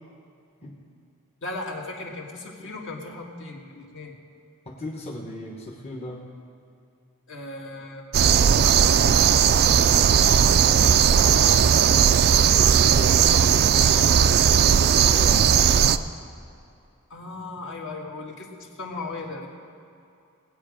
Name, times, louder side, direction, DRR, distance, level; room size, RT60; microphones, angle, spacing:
voice 1, 1.4-4.2 7.3-8.1 8.6-9.1 12.9-14.0 17.1-19.5, left 2 dB, 60° left, -1 dB, 1.7 m, -37 dB
voice 2, 4.7-6.2 10.5-11.4 12.5-13.4 14.5-15.6, left 1 dB, 30° left, -1 dB, 1.0 m, -37 dB
Hilden night open field crickets truck drive-by, 8.1-16.0, right 8 dB, 45° right, 0.4 m, -17 dB
19.0 x 8.5 x 5.0 m, 2.5 s
head